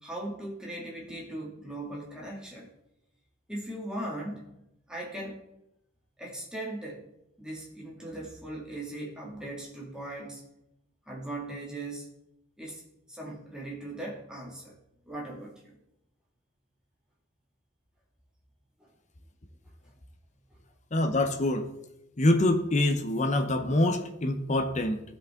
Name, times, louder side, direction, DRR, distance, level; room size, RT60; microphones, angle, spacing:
voice 1, 0.0-2.7 3.5-4.5 4.9-5.5 6.2-7.0 7.4-10.4 11.1-12.1 12.6-12.8 13.1-14.8 15.1-15.8 18.8-18.9 19.8-19.9 20.5-20.6, right 1 dB, 5° right, -4 dB, 2.1 m, -39 dB
voice 2, 20.9-21.7 22.2-25.0, left 1 dB, 35° left, 6 dB, 0.8 m, -25 dB
15.5 x 5.3 x 3.6 m, 0.83 s
head